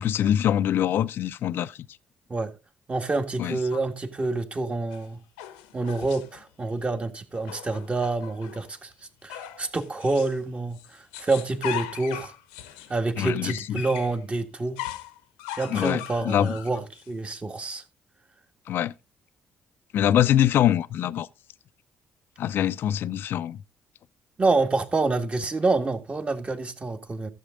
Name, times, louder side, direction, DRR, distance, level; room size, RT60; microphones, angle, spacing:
voice 1, 0.0-1.8 3.4-3.6 13.2-13.7 15.7-16.5 18.7-18.9 19.9-21.3 22.4-23.6, left 11 dB, 60° left, 0.5 m, -24 dB
voice 2, 2.9-5.2 5.7-8.9 9.2-12.3 12.9-14.8 15.6-17.8 24.4-27.3, right 3 dB, 30° right, 1.8 m, -27 dB
sound 1, 4.9-6.4 7.3-8.7 9.3-10.4 10.7-14.2 14.8-17.1, left 12 dB, 80° left, 1.0 m, -39 dB
14.0 x 7.3 x 3.7 m
hypercardioid pair, 45°, 4 cm